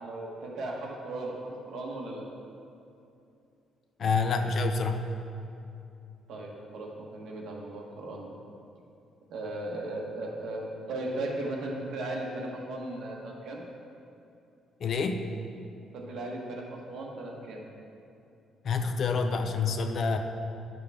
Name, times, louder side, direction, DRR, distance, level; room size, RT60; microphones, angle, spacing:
voice 1, 0.0-2.2 6.3-8.3 9.3-13.6 15.9-17.6, right 2 dB, 60° right, -2 dB, 1.4 m, -37 dB
voice 2, 4.0-5.0 14.8-15.2 18.6-20.2, left 4 dB, 40° left, 6 dB, 0.5 m, -27 dB
10.5 x 6.8 x 3.6 m, 2.7 s
cardioid pair, 165°, 0 cm